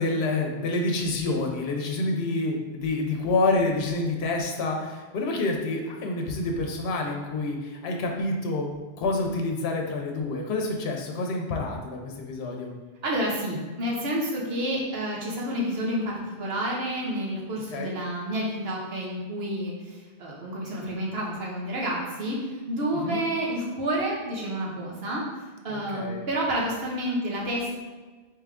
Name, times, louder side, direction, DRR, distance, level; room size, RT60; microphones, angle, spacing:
voice 1, 0.0-12.7 17.7-17.9 23.0-23.2 25.7-26.3, left 2 dB, 80° left, 1 dB, 0.8 m, -28 dB
voice 2, 13.0-22.4 22.7-25.2 25.6-27.7, right 1 dB, 70° right, -3 dB, 1.1 m, -29 dB
3.4 x 3.1 x 3.5 m, 1.3 s
omnidirectional pair, 1.1 m